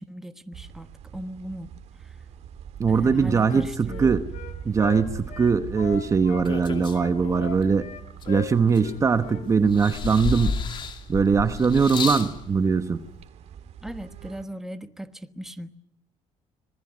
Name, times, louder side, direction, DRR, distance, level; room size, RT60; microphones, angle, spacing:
voice 1, 0.0-2.2 2.9-4.2 13.8-15.8, equal, 5° right, 1.2 m, -39 dB
sound 1, 0.5-14.4, right 8 dB, 60° right, 2.3 m, -42 dB
voice 2, 2.8-4.3 4.6-7.9 8.3-10.6 11.1-13.0, right 5 dB, 25° right, 1.1 m, -21 dB
Wind instrument woodwind instrument, 3.0-6.5 6.9-9.0 9.2-9.4 9.7-10.0 10.3-10.5, left 10 dB, 65° left, 3.3 m, -39 dB
sound 2, 5.8-7.6 8.2-9.3 9.7-12.3 13.2-13.3, left 5 dB, 40° left, 2.6 m, -32 dB
26.0 x 20.5 x 9.6 m
cardioid pair, 165°, 13 cm